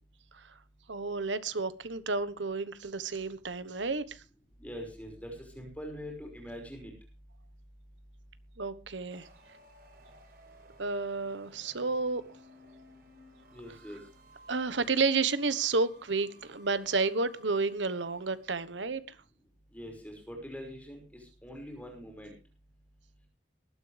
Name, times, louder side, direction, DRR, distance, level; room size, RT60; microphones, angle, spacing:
voice 1, 0.9-4.2 8.6-9.3 10.8-12.2 14.5-19.0, right 4 dB, 80° right, 14 dB, 1.2 m, -31 dB
voice 2, 4.6-6.9 13.5-14.0 19.7-22.3, equal, 10° left, 2 dB, 5.5 m, -43 dB
sound 1, 9.1-18.7, equal, 55° right, 4.3 m, -58 dB
19.5 x 13.0 x 3.4 m, 0.33 s
head